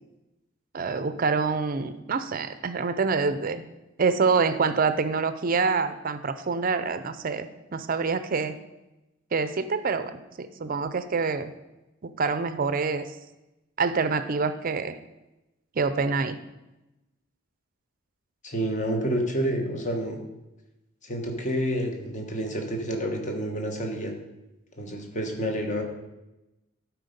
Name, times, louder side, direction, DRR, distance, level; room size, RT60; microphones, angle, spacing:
voice 1, 0.7-3.6 4.0-8.5 9.3-11.5 12.0-13.1 13.8-15.0 15.8-16.4, right 4 dB, 40° right, 12 dB, 0.5 m, -26 dB
voice 2, 18.4-20.2 21.0-24.1 24.8-25.8, equal, 35° left, 2 dB, 1.2 m, -29 dB
12.0 x 4.6 x 5.2 m, 0.98 s
head